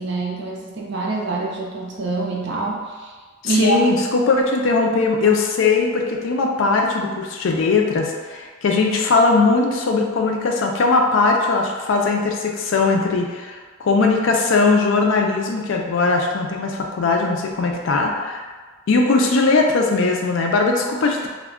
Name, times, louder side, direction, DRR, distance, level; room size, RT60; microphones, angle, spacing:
voice 1, 0.0-3.1 3.4-3.9, right 3 dB, 60° right, -2 dB, 0.5 m, -25 dB
voice 2, 3.4-18.4 18.9-21.3, left 3 dB, 70° left, 1 dB, 0.4 m, -19 dB
2.3 x 2.1 x 3.4 m, 1.4 s
head